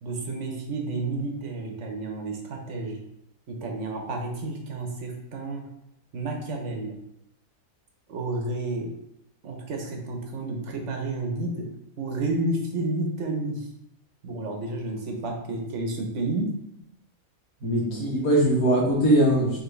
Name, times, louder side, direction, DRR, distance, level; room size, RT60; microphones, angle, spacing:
voice 1, 0.0-3.0 3.5-5.7 6.1-7.0 8.1-8.9 9.4-11.7 12.0-13.7 14.2-16.5 17.6-18.1, right 2 dB, 60° right, 2 dB, 1.1 m, -31 dB
voice 2, 17.6-19.6, right 1 dB, 80° left, -1 dB, 1.6 m, -21 dB
4.8 x 3.1 x 3.2 m, 0.81 s
omnidirectional pair, 1.5 m